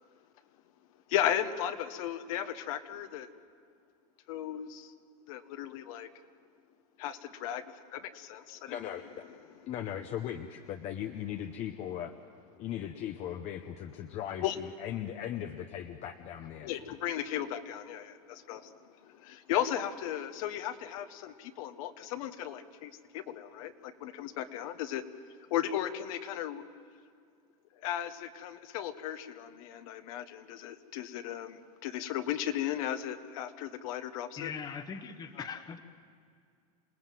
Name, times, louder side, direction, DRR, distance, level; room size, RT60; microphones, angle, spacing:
voice 1, 1.1-3.3 4.3-4.9 5.3-6.1 7.0-8.8 14.4-14.6 16.6-25.0 25.5-26.6 27.8-34.5 35.4-35.5, left 11 dB, 65° left, 9 dB, 1.4 m, -36 dB
voice 2, 8.7-9.3 9.7-12.1 12.6-16.9, left 10 dB, 35° left, 7 dB, 0.9 m, -38 dB
voice 3, 34.4-35.8, left 6 dB, 20° left, 10 dB, 1.2 m, -40 dB
27.5 x 18.5 x 7.7 m, 2.2 s
supercardioid pair, 150°, 19 cm